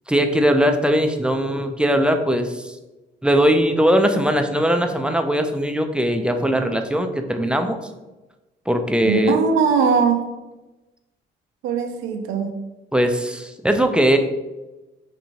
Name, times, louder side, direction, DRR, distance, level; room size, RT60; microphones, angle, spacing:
voice 1, 0.1-2.7 3.2-7.8 8.7-9.4 12.9-14.2, equal, 5° right, 5 dB, 0.3 m, -20 dB
voice 2, 9.0-10.3 11.6-12.5, right 5 dB, 85° right, 5 dB, 0.4 m, -20 dB
4.2 x 2.6 x 2.8 m, 1.1 s
cardioid pair, 90°, 20 cm